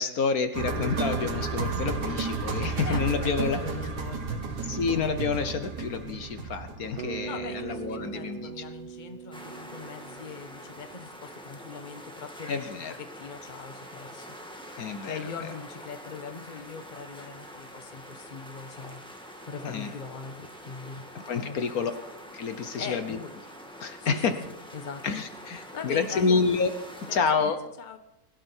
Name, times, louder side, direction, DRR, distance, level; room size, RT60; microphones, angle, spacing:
voice 1, 0.0-3.6 4.7-8.5 12.5-12.9 14.8-15.2 19.6-19.9 21.3-21.9 22.3-23.2 23.8-24.3 25.0-26.7 27.1-27.6, left 5 dB, 65° left, 9 dB, 1.4 m, -28 dB
sound 1, 0.5-8.5 8.8-8.9, right 4 dB, 85° right, 2.1 m, -33 dB
voice 2, 2.8-4.5 7.2-12.7 13.0-14.7 15.0-21.1 21.4-21.9 22.7-23.3 24.0-25.0 25.7-26.3 27.1-28.0, left 5 dB, 30° left, 8 dB, 1.3 m, -41 dB
Bass guitar, 7.0-11.1, right 9 dB, 60° right, 0.6 m, -41 dB
sound 2, 9.3-27.2, equal, 5° left, 1.9 m, -45 dB
22.0 x 12.0 x 4.5 m, 0.84 s
omnidirectional pair, 1.7 m